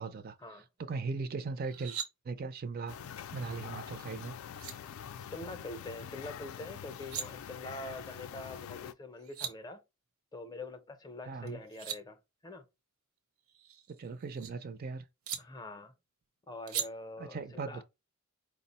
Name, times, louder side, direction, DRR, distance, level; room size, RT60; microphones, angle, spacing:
voice 1, 0.0-0.3 0.8-2.0 2.2-3.0 3.3-4.4 11.3-11.6 13.9-15.0 17.2-17.8, right 4 dB, 45° right, 0.4 m, -38 dB
sound 1, 1.6-2.1 4.1-4.2 4.5-4.7 6.8-7.3 8.9-9.0 9.2-9.5 11.5-12.0 13.5-14.5 15.3-15.4 16.7-16.9, right 8 dB, 75° right, 0.7 m, -39 dB
sound 2, 2.9-8.9, left 8 dB, 75° left, 0.3 m, -45 dB
voice 2, 5.3-9.8 10.3-12.6 15.4-15.9 16.5-17.8, left 2 dB, 20° left, 0.5 m, -44 dB
4.7 x 2.0 x 4.0 m
head